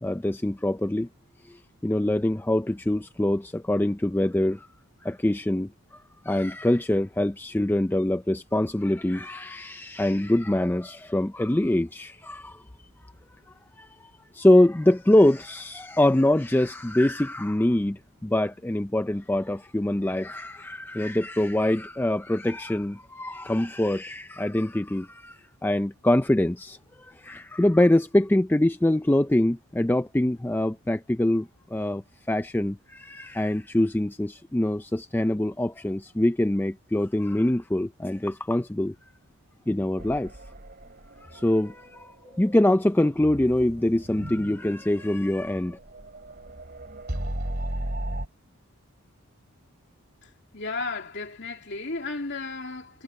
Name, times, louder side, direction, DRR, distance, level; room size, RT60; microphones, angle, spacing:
voice 1, 0.0-1.1 1.4-4.7 5.0-12.6 13.8-38.9 39.7-40.3 41.2-45.8, left 1 dB, 10° left, 0.4 m, -24 dB
sound 1, 40.0-48.3, right 1 dB, 45° right, 2.7 m, -37 dB
voice 2, 50.2-53.0, left 3 dB, 50° left, 3.0 m, -34 dB
head